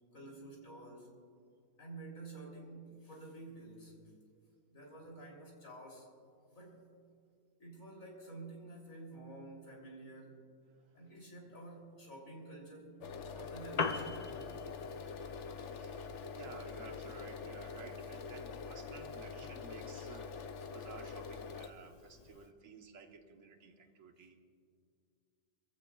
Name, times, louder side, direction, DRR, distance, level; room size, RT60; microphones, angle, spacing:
voice 1, 0.1-1.1 1.8-4.0 4.7-6.1 6.5-6.9 7.6-10.5 10.9-13.0 13.3-14.3, right 2 dB, 85° left, -2 dB, 3.7 m, -50 dB
voice 2, 10.7-11.1 13.2-13.5 15.8-24.4, right 4 dB, 75° right, 4 dB, 1.5 m, -54 dB
sound 1, 13.0-21.7, left 5 dB, 65° left, 1.0 m, -45 dB
Piano, 13.5-22.5, left 4 dB, 40° left, 0.6 m, -45 dB
25.0 x 15.5 x 2.3 m, 2.3 s
omnidirectional pair, 1.4 m